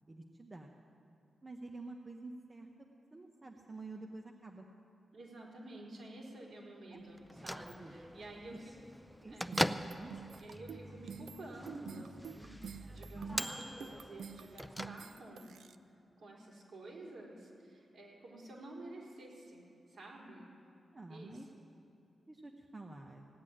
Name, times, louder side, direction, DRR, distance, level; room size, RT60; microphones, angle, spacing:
voice 1, 0.1-0.7 1.4-2.7 3.1-4.7 6.9-7.0 7.8-8.2 9.2-10.1 13.1-13.5 20.9-21.5 22.3-23.3, right 2 dB, 25° right, 2 dB, 0.9 m, -49 dB
voice 2, 5.1-8.8 9.3-9.5 10.4-15.5 16.2-20.5 21.1-21.6, right 1 dB, 65° right, -3 dB, 4.3 m, -50 dB
Bell / Microwave oven, 7.2-15.5, equal, ahead, 0.4 m, -41 dB
sound 1, 9.5-15.7, right 7 dB, 90° right, 0.5 m, -49 dB
17.0 x 8.3 x 10.0 m, 2.7 s
wide cardioid pair, 120°, 0 cm